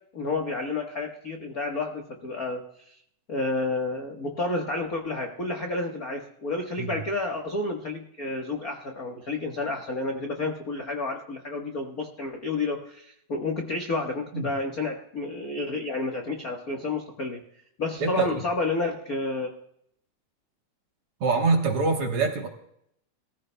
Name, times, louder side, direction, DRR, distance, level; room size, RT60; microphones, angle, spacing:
voice 1, 0.1-2.9 3.3-17.4 17.8-19.5, left 3 dB, 70° left, 1 dB, 0.8 m, -30 dB
voice 2, 18.0-18.4 21.2-22.5, right 4 dB, 55° right, 2 dB, 1.9 m, -25 dB
22.0 x 15.0 x 2.2 m, 0.73 s
omnidirectional pair, 3.8 m